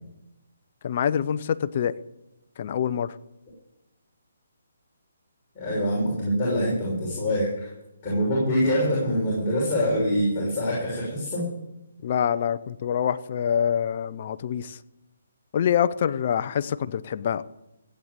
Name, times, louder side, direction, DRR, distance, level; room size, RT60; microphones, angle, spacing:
voice 1, 0.8-2.0 2.6-3.2 12.0-14.8 15.5-17.4, left 8 dB, 45° left, 14 dB, 0.7 m, -25 dB
voice 2, 5.5-7.7 8.0-11.5, equal, 25° left, -6 dB, 6.4 m, -24 dB
16.0 x 9.0 x 8.1 m, 0.92 s
figure-of-eight pair, 145°, 0 cm